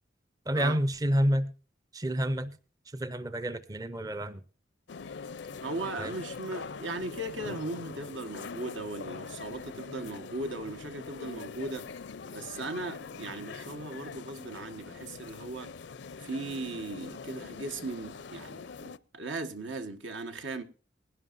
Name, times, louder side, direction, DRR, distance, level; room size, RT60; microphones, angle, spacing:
voice 1, 0.5-1.5 1.9-2.6 2.9-4.4 6.0-6.1, equal, 20° right, 0.5 m, -29 dB
sound 1, 4.9-19.0, left 5 dB, 65° left, 0.5 m, -43 dB
voice 2, 5.6-11.9 12.3-15.7 16.2-20.6, right 2 dB, 80° right, 1.4 m, -38 dB
20.5 x 11.0 x 2.6 m
head